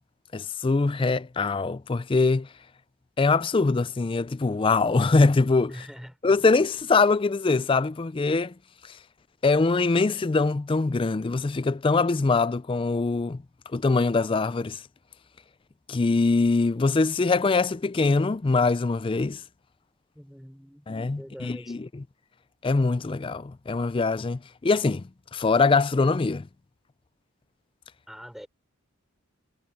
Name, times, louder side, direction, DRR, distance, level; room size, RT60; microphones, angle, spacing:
voice 1, 0.3-2.5 3.2-5.9 6.2-8.5 9.4-13.4 13.7-14.8 15.9-19.4 20.9-22.0 22.6-25.0 25.3-26.5, left 3 dB, 25° left, 0.4 m, -23 dB
voice 2, 5.7-6.1 20.2-20.9 21.2-21.8 28.1-28.5, equal, ahead, 3.8 m, -43 dB
head